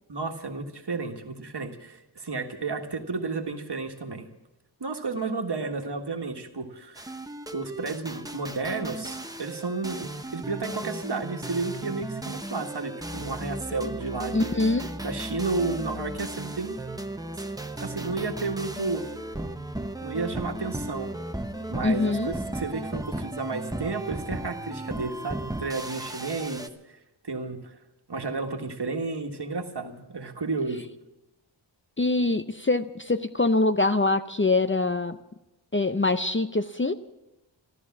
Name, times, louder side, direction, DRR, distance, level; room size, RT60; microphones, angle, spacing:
voice 1, 0.1-4.3 4.8-7.0 7.5-14.5 15.0-16.8 17.8-19.1 20.0-21.1 21.7-26.7 27.2-27.7 28.1-30.9, right 3 dB, 55° right, 4 dB, 1.6 m, -32 dB
sound 1, 7.0-26.7, right 1 dB, 10° right, 0.9 m, -35 dB
voice 2, 14.3-14.9 21.8-22.3 32.0-35.2 35.7-36.9, left 2 dB, 25° left, 10 dB, 0.6 m, -24 dB
13.5 x 13.5 x 7.4 m, 0.96 s
wide cardioid pair, 70°, 48 cm